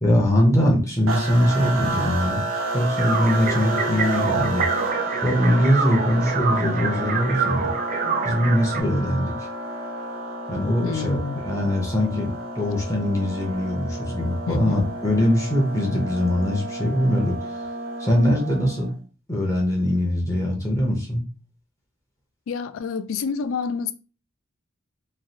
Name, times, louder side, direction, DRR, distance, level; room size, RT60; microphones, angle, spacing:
voice 1, 0.0-2.4 2.7-4.7 5.2-7.7 8.2-9.3 10.5-11.2 11.4-17.5 18.0-18.9 19.3-21.2, equal, 15° left, 0.6 m, -22 dB
sound 1, 1.1-18.9, right 2 dB, 85° right, 0.6 m, -31 dB
sound 2, 3.0-8.8, right 5 dB, 40° right, 0.4 m, -27 dB
voice 2, 10.8-11.6 14.5-14.9 22.5-23.9, left 5 dB, 75° left, 0.3 m, -28 dB
3.1 x 2.3 x 2.7 m
head